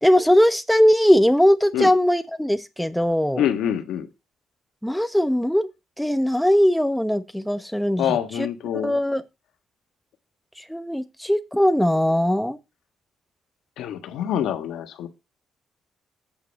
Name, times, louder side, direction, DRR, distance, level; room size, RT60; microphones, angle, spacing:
voice 1, 0.0-3.5 4.8-5.7 6.0-8.5 8.7-9.2 10.7-12.6, equal, ahead, 0.9 m, -20 dB
voice 2, 3.4-4.1 8.0-9.0 13.8-15.1, left 10 dB, 85° left, 1.4 m, -25 dB
8.7 x 5.3 x 5.2 m
cardioid pair, 90°, 0 cm